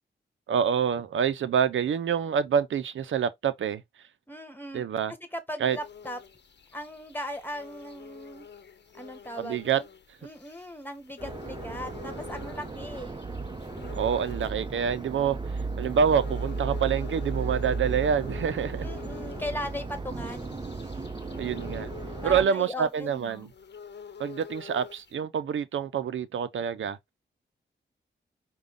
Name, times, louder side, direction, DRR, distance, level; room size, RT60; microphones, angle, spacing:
voice 1, 0.5-3.8 4.7-5.1 5.6-5.8 9.4-9.8 13.9-18.9 21.4-21.9 22.2-23.5 24.2-27.0, right 7 dB, 75° right, 0.6 m, -27 dB
voice 2, 4.3-4.8 5.3-6.2 6.7-8.5 8.9-9.9 10.2-13.1 18.8-20.6 22.2-23.5, equal, 10° left, 1.6 m, -38 dB
sound 1, 5.7-25.1, left 7 dB, 60° left, 0.9 m, -47 dB
sound 2, 11.2-22.5, right 3 dB, 25° right, 0.8 m, -35 dB
4.9 x 2.3 x 3.6 m
supercardioid pair, 40°, 20 cm